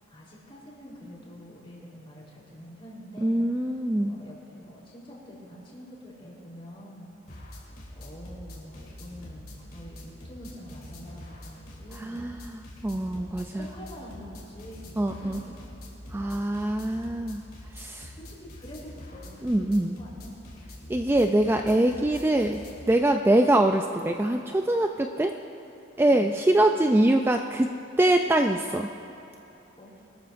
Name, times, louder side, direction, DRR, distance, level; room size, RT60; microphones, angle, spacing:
voice 1, 0.1-7.4 8.0-12.2 12.9-15.9 18.2-20.4 29.8-29.9, equal, 30° left, -5 dB, 3.7 m, -46 dB
voice 2, 3.2-4.1 12.0-13.7 15.0-15.4 16.1-17.4 17.7-18.1 19.4-20.0 20.9-22.6 22.9-25.4 26.0-27.7 28.0-28.9, right 1 dB, 10° right, 4 dB, 0.3 m, -24 dB
sound 1, 7.3-22.9, left 1 dB, 50° left, 3.2 m, -45 dB
23.0 x 13.0 x 2.6 m, 2.9 s
head